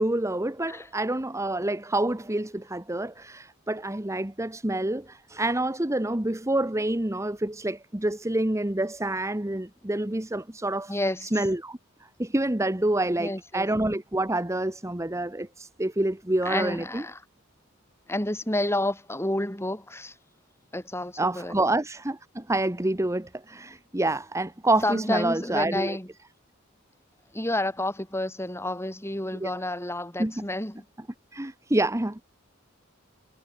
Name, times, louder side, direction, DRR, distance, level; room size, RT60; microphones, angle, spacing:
voice 1, 0.0-10.9 11.2-17.0 21.2-26.0 29.4-29.5 30.2-30.4 31.3-32.2, right 1 dB, 15° right, 1.2 m, -27 dB
voice 2, 10.9-11.3 13.2-13.7 16.4-17.2 18.1-20.1 20.7-21.6 24.8-26.1 27.3-30.8, left 1 dB, 15° left, 4.9 m, -30 dB
head